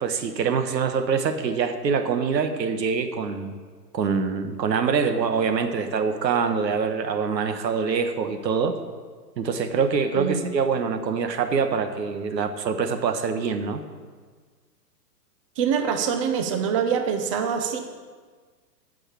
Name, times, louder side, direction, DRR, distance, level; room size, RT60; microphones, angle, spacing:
voice 1, 0.0-3.6 3.9-8.8 9.4-13.8, right 5 dB, 80° right, 8 dB, 1.3 m, -25 dB
voice 2, 10.1-10.5 15.6-17.8, right 7 dB, 20° right, 6 dB, 0.6 m, -24 dB
9.0 x 6.6 x 8.6 m, 1.5 s
hypercardioid pair, 145°, 50 cm